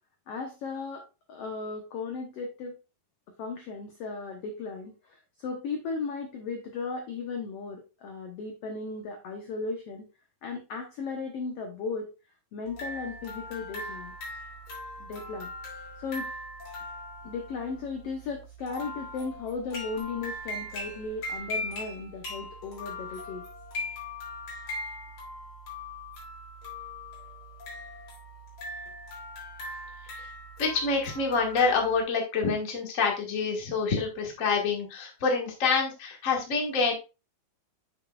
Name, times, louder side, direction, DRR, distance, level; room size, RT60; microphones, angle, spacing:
voice 1, 0.3-2.7 3.4-10.1 10.4-12.1 12.5-14.1 15.0-15.5 16.0-16.3 17.2-23.5, left 4 dB, 75° left, 3 dB, 1.4 m, -36 dB
sound 1, 12.7-32.0, left 1 dB, 60° left, 4.0 m, -40 dB
voice 2, 30.6-36.9, left 4 dB, 40° left, 0 dB, 1.1 m, -27 dB
7.6 x 6.4 x 2.3 m, 0.29 s
omnidirectional pair, 4.0 m